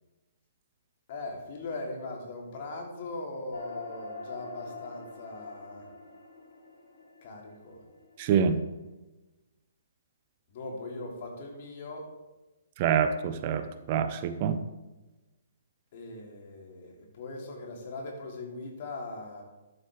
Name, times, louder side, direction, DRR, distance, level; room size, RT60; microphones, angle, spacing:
voice 1, 1.1-5.8 7.2-7.8 10.5-12.1 15.9-19.4, left 2 dB, 40° left, 0 dB, 3.3 m, -40 dB
sound 1, 3.5-8.3, left 3 dB, 65° left, 4.3 m, -44 dB
voice 2, 8.2-8.6 12.8-14.6, right 7 dB, 35° right, 10 dB, 0.9 m, -26 dB
13.5 x 11.0 x 3.5 m, 1.1 s
figure-of-eight pair, 125°, 0 cm